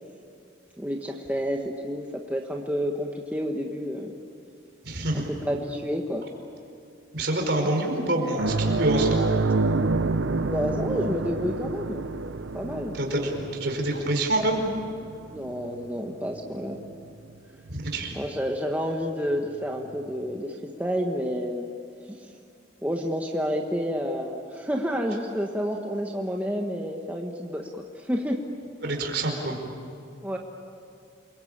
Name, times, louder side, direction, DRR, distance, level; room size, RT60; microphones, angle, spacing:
voice 1, 0.8-4.1 5.1-6.2 10.5-12.1 12.5-12.9 15.3-16.8 18.1-21.7 22.1-22.3 22.8-28.4 30.2-30.4, equal, 10° right, 0 dB, 1.4 m, -29 dB
voice 2, 4.8-5.3 7.1-9.2 12.9-14.6 17.7-18.1 28.8-29.6, right 1 dB, 55° right, 2 dB, 4.8 m, -26 dB
sound 1, 8.4-17.3 17.7-17.8 19.9-20.0, right 3 dB, 70° right, 0.8 m, -28 dB
29.0 x 22.5 x 8.9 m, 2.5 s
head